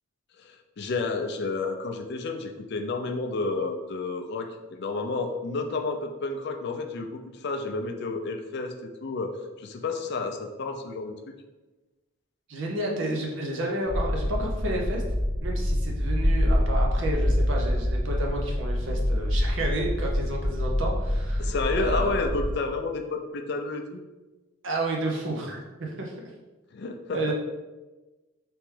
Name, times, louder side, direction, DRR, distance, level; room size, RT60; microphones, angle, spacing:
voice 1, 0.4-8.7 9.0-11.1 21.4-24.0 26.7-27.3, left 3 dB, 50° left, 5 dB, 0.4 m, -31 dB
voice 2, 12.5-15.0 15.4-22.3 24.6-26.1 27.1-27.3, right 1 dB, 60° right, -1 dB, 0.6 m, -31 dB
sound 1, 13.9-22.6, equal, 25° right, 0.9 m, -26 dB
3.4 x 3.1 x 3.2 m, 1.2 s
head